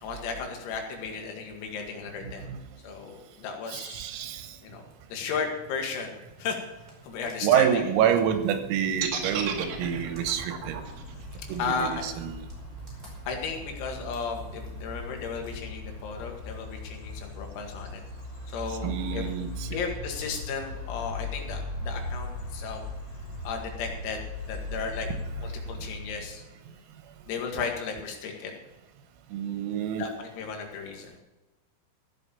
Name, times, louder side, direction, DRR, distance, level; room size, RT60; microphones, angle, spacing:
voice 1, 0.0-2.5 2.8-4.0 4.6-4.8 5.1-6.6 7.0-7.8 11.6-12.1 13.3-18.0 18.5-19.2 19.7-22.8 23.4-24.2 24.5-25.1 25.4-26.4 27.3-28.5 30.0-31.2, left 5 dB, 85° left, 2 dB, 4.7 m, -34 dB
voice 2, 2.2-2.6 3.7-4.6 7.4-10.8 11.5-12.3 18.7-19.8 29.3-30.1, right 9 dB, 90° right, 8 dB, 3.9 m, -27 dB
sound 1, 4.6-15.5, right 3 dB, 10° right, 4.5 m, -50 dB
sound 2, 8.8-26.4, left 2 dB, 60° left, 5.4 m, -39 dB
sound 3, 9.0-13.1, right 8 dB, 70° right, 3.8 m, -35 dB
14.5 x 8.3 x 7.1 m, 1.1 s
omnidirectional pair, 6.0 m